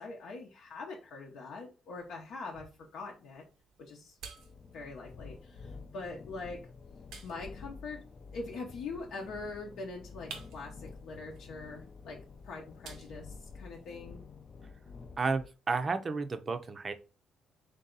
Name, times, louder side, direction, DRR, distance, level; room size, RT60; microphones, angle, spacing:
voice 1, 0.0-3.4 3.8-4.2 4.7-6.7 7.2-8.0 8.3-14.2, left 3 dB, 80° left, -2 dB, 0.7 m, -43 dB
sound 1, 1.9-14.0, right 5 dB, 90° right, 0.8 m, -55 dB
sound 2, 4.3-15.5, left 4 dB, 45° left, 0.4 m, -49 dB
voice 2, 15.2-16.9, right 4 dB, 35° right, 9 dB, 0.5 m, -32 dB
3.3 x 2.7 x 3.8 m, 0.32 s
cardioid pair, 90°, 0 cm